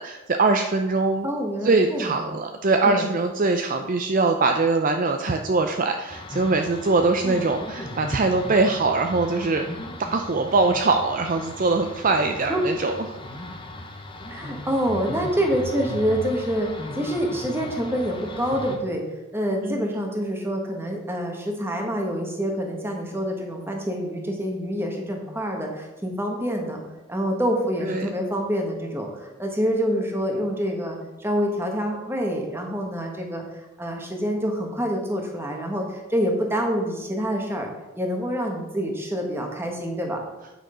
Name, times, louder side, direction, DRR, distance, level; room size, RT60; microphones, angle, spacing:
voice 1, 0.0-1.3 1.6-9.7 10.0-13.2 19.6-19.9 27.8-28.1, right 3 dB, 40° right, 5 dB, 0.5 m, -22 dB
voice 2, 1.2-2.2 2.8-3.1 7.2-7.4 12.5-12.7 14.3-19.0 19.3-26.8 27.1-33.4 33.8-37.7 38.0-40.2, equal, 10° right, 1 dB, 1.4 m, -26 dB
sound 1, 6.1-18.8, left 1 dB, 25° left, 0.9 m, -37 dB
9.3 x 6.2 x 5.0 m, 1.1 s
head